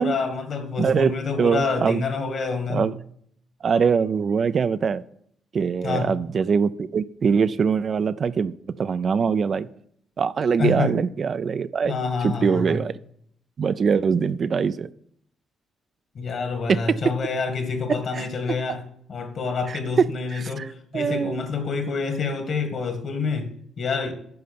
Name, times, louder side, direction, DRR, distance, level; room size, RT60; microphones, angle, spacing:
voice 1, 0.0-2.9 5.8-6.1 10.6-10.9 11.9-12.8 16.1-24.1, left 4 dB, 55° left, 1.9 m, -27 dB
voice 2, 0.8-1.1 1.4-2.0 2.7-3.0 3.6-5.0 5.5-9.7 10.2-11.9 12.2-12.9 13.6-14.9 16.7-16.8 18.1-18.6 19.7-20.0 20.3-20.7 20.9-21.4, right 6 dB, 50° right, 0.4 m, -23 dB
9.3 x 5.6 x 6.9 m
cardioid pair, 90°, 0 cm